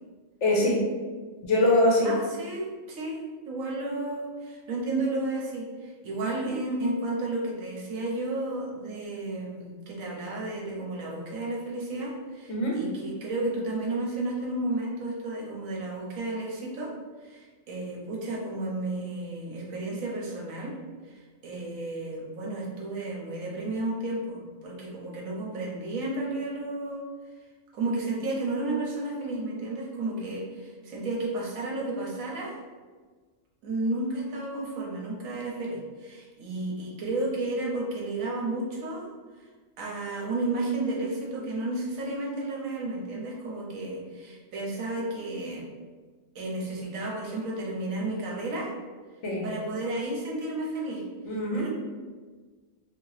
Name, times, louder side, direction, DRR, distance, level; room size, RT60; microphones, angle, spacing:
voice 1, 0.4-0.8 1.4-2.1 6.2-6.5 12.5-12.8 49.2-49.4 51.2-51.7, left 1 dB, 65° left, -3 dB, 1.1 m, -23 dB
voice 2, 2.0-16.9 17.2-20.7 21.1-27.0 27.7-32.6 33.6-39.0 39.4-39.5 39.8-45.6 46.3-48.7 49.4-51.0 51.3-51.7, right 2 dB, 80° right, -2 dB, 1.2 m, -32 dB
2.8 x 2.8 x 3.1 m, 1.4 s
omnidirectional pair, 1.4 m